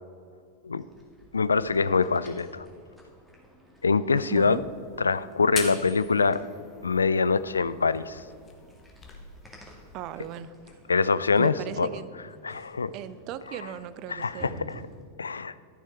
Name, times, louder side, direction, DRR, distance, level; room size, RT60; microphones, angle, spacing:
sound 1, 0.8-15.0, equal, ahead, 2.2 m, -52 dB
voice 1, 1.3-2.7 3.8-4.6 5.0-6.4 6.8-8.2 10.9-11.9 12.4-12.9 14.1-14.8 15.2-15.5, left 4 dB, 75° left, 16 dB, 0.3 m, -24 dB
voice 2, 4.3-4.6 9.9-10.5 11.4-12.1 12.9-14.5, right 11 dB, 40° right, 15 dB, 0.4 m, -37 dB
sound 2, 4.4-10.4, left 5 dB, 25° left, 1.4 m, -43 dB
12.0 x 6.6 x 4.6 m, 2.2 s
figure-of-eight pair, 90°, 0 cm